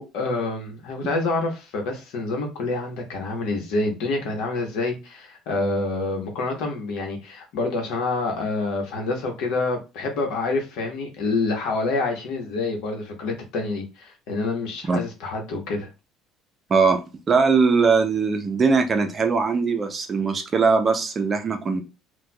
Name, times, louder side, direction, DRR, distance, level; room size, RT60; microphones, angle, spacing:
voice 1, 0.0-15.9, left 3 dB, 75° left, 1.0 m, -27 dB
voice 2, 16.7-21.8, right 4 dB, 25° right, 0.5 m, -20 dB
4.4 x 2.3 x 2.2 m
cardioid pair, 150°, 0 cm